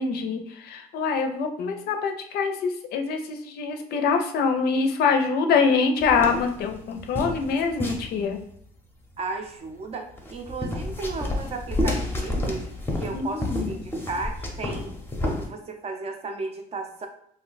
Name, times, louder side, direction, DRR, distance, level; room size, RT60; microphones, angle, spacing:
voice 1, 0.0-8.4 13.1-13.7, left 5 dB, 70° left, 6 dB, 0.5 m, -24 dB
sound 1, 6.0-8.5 10.2-15.5, left 1 dB, 15° left, 0.6 m, -30 dB
voice 2, 9.2-12.7 13.0-14.9 15.2-17.1, right 3 dB, 40° right, 4 dB, 0.5 m, -34 dB
2.5 x 2.2 x 4.0 m, 0.66 s
cardioid pair, 110°, 17 cm